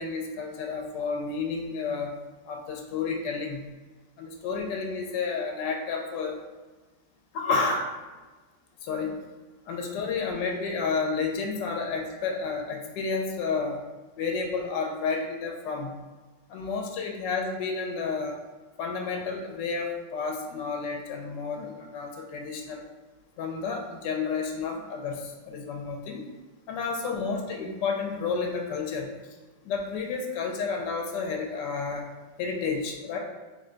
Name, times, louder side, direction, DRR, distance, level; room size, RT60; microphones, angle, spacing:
voice 1, 0.0-2.1 2.5-3.6 4.2-6.4 7.3-7.9 8.8-9.1 9.7-13.8 14.2-15.9 16.5-18.4 18.8-22.8 23.4-26.3 26.7-29.1 29.6-32.1 32.4-33.2, left 4 dB, 75° left, 1 dB, 1.2 m, -31 dB
3.3 x 2.2 x 3.7 m, 1.3 s
omnidirectional pair, 1.9 m